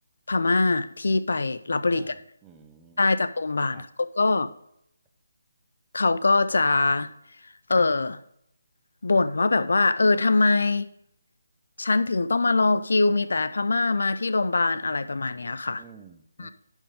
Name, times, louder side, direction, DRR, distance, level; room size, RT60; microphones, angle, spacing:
voice 1, 0.3-2.2 3.0-4.5 5.9-7.1 7.7-8.2 9.0-10.9 11.8-15.8 16.4-16.5, left 3 dB, 70° left, 0.4 m, -23 dB
voice 2, 1.8-3.0 3.7-3.9 15.8-16.5, right 7 dB, 10° right, 0.6 m, -51 dB
10.5 x 4.5 x 3.6 m
figure-of-eight pair, 155°, 0 cm